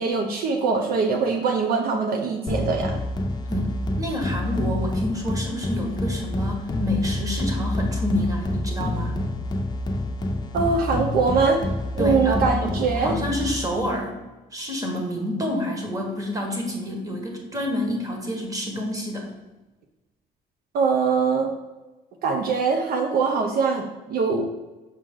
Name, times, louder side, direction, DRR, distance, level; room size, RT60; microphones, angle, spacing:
voice 1, 0.0-3.0 10.5-11.6 12.0-13.2 20.7-21.5 22.2-24.4, right 4 dB, 65° right, 4 dB, 0.7 m, -22 dB
sound 1, 2.5-14.0, left 1 dB, 25° left, 0.8 m, -28 dB
voice 2, 4.0-9.2 12.0-14.2 14.5-19.3, left 1 dB, 20° right, 1 dB, 1.6 m, -28 dB
6.5 x 4.8 x 3.8 m, 1.1 s
cardioid pair, 110°, 17 cm